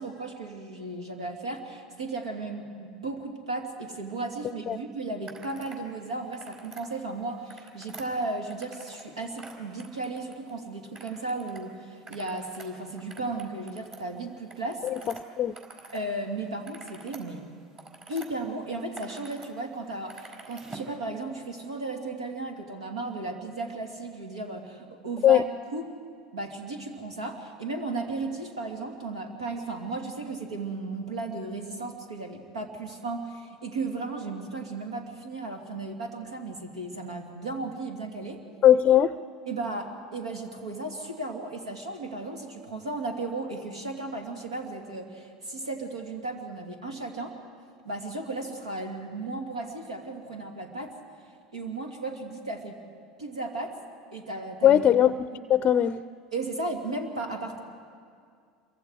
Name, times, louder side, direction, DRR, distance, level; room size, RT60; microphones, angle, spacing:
voice 1, 0.0-14.9 15.9-17.4 18.1-25.4 25.7-25.9 26.3-38.4 39.5-47.4 47.8-51.0 51.5-52.8 53.2-53.8 54.1-54.8 55.3-55.4 56.3-57.6, right 2 dB, 85° right, 4 dB, 2.5 m, -35 dB
sound 1, 5.2-5.8 6.2-6.9 7.3-9.1 9.3-10.5 10.9-11.6 11.9-16.0 16.4-18.3 18.7-19.5 19.8-20.9, right 3 dB, 30° right, 4.6 m, -47 dB
voice 2, 38.6-39.1 54.6-55.1 55.5-56.0, left 11 dB, 40° left, 15 dB, 0.5 m, -19 dB
27.5 x 23.5 x 4.9 m, 2.2 s
hypercardioid pair, 75°, 3 cm